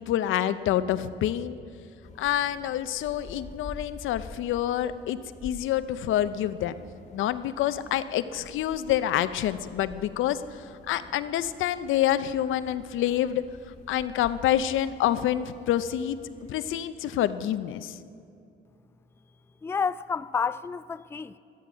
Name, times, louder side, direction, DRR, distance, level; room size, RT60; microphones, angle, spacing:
voice 1, 0.0-1.6 2.2-6.7 7.1-13.5 13.9-16.2 16.5-18.0, left 11 dB, 85° left, 0.6 m, -27 dB
sound 1, 2.0-16.8, left 3 dB, 35° left, 1.7 m, -48 dB
voice 2, 19.6-21.4, left 6 dB, 15° left, 0.3 m, -30 dB
13.0 x 13.0 x 6.2 m
cardioid pair, 90°, 20 cm